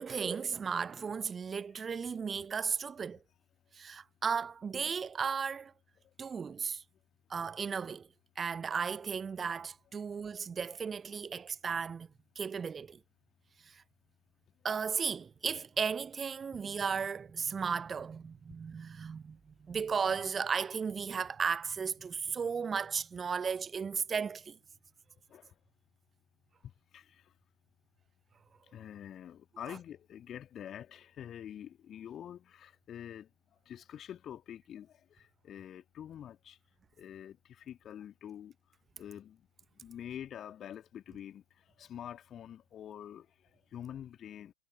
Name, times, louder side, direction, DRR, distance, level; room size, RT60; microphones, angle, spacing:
voice 1, 0.0-3.2 3.7-5.7 6.2-6.8 7.3-8.1 8.4-12.1 12.4-13.0 13.7-13.8 14.6-24.6, right 6 dB, 20° right, 0.9 m, -35 dB
voice 2, 26.6-27.3 28.7-33.3 33.7-36.6 37.0-38.5 39.0-39.5 39.8-44.5, left 10 dB, 25° left, 1.9 m, -47 dB
figure-of-eight pair, 90°, 0 cm